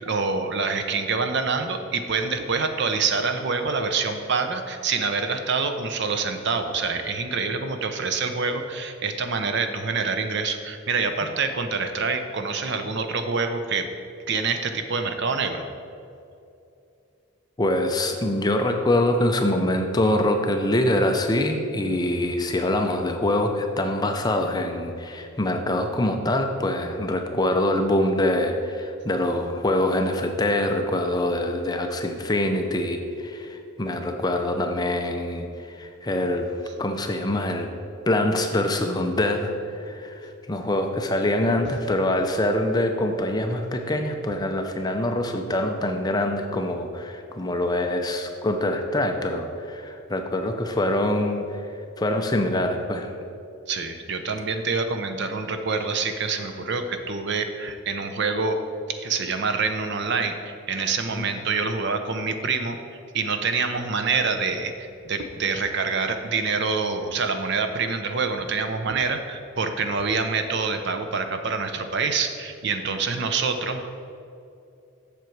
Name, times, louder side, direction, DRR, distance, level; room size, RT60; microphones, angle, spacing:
voice 1, 0.0-13.9 14.3-15.7 53.7-58.6 58.9-62.8 63.1-74.0, right 4 dB, 50° right, 7 dB, 0.6 m, -26 dB
voice 2, 17.6-36.5 36.8-37.7 38.1-51.5 52.0-53.1 61.2-61.3, left 1 dB, 20° left, 4 dB, 0.5 m, -24 dB
7.7 x 6.7 x 4.6 m, 2.6 s
head